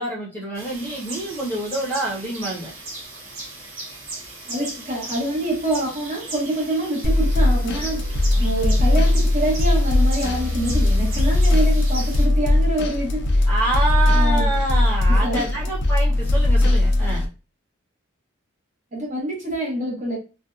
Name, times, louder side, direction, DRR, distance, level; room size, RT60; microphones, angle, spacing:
voice 1, 0.0-2.7 13.5-17.3, right 2 dB, 10° left, 0.7 m, -27 dB
sound 1, 0.5-12.3, right 2 dB, 85° right, 1.2 m, -37 dB
voice 2, 4.4-13.5 14.1-14.5 15.1-15.4 18.9-20.2, right 1 dB, 40° right, 1.0 m, -26 dB
sound 2, 7.0-17.3, left 1 dB, 60° left, 0.5 m, -19 dB
2.6 x 2.2 x 2.4 m
head